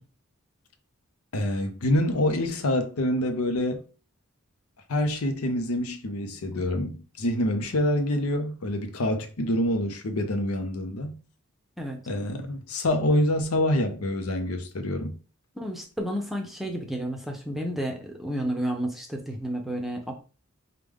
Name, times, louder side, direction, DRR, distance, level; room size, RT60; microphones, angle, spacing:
voice 1, 1.3-3.8 4.9-11.2 12.1-15.2, left 1 dB, 85° left, 0.7 m, -26 dB
voice 2, 15.6-20.1, right 1 dB, ahead, 0.6 m, -31 dB
4.8 x 2.3 x 3.5 m
head